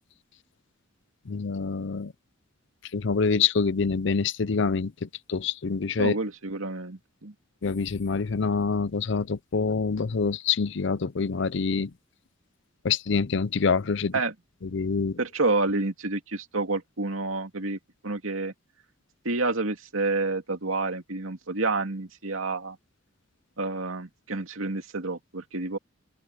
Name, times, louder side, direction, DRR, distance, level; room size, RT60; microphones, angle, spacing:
voice 1, 1.3-2.1 2.9-6.1 7.6-11.9 12.8-14.1 14.7-15.2, left 5 dB, 60° left, 0.6 m, -26 dB
voice 2, 6.0-7.3 14.1-14.3 15.2-18.5 19.2-22.8 23.6-25.8, right 3 dB, 90° right, 2.4 m, -29 dB
open air
head